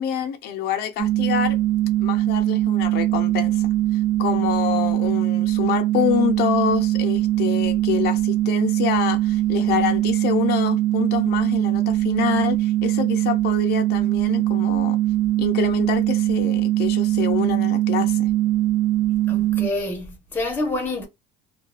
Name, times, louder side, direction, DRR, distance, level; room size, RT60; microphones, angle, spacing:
voice 1, 0.0-1.6 2.0-3.6 4.2-15.0 15.4-18.3, left 9 dB, 55° left, 0.5 m, -26 dB
sound 1, 1.0-19.7, right 15 dB, 65° right, 0.9 m, -21 dB
voice 2, 19.3-21.1, left 2 dB, 10° left, 0.7 m, -27 dB
2.3 x 2.2 x 2.3 m
cardioid pair, 160°, 20 cm